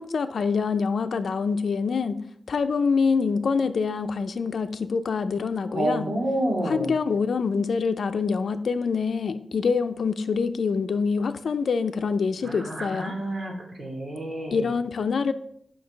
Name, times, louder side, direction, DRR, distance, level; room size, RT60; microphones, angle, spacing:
voice 1, 0.0-2.2 2.5-6.1 6.6-13.2 14.5-15.3, left 5 dB, 75° left, 10 dB, 0.6 m, -25 dB
voice 2, 5.7-6.9 12.4-13.5 13.8-14.7, right 1 dB, 40° right, 0 dB, 2.8 m, -29 dB
10.0 x 6.1 x 5.1 m, 0.66 s
wide cardioid pair, 140°, 0 cm